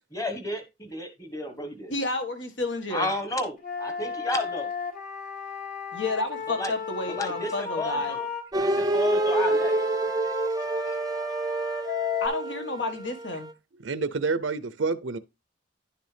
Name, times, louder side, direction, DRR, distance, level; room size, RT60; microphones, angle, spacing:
voice 1, 0.1-1.9 2.9-4.7 6.5-6.7 7.1-8.3 8.6-9.8, left 1 dB, 15° left, 1.4 m, -32 dB
voice 2, 1.9-3.1 5.9-8.2 12.2-13.5, left 2 dB, 75° left, 1.6 m, -30 dB
Wind instrument woodwind instrument, 3.6-8.4 9.1-12.3, left 4 dB, 50° left, 2.5 m, -34 dB
sound 1, 8.5-13.5, right 1 dB, 20° right, 0.6 m, -28 dB
voice 3, 13.8-15.2, right 4 dB, 90° right, 0.6 m, -28 dB
10.5 x 6.6 x 3.4 m
head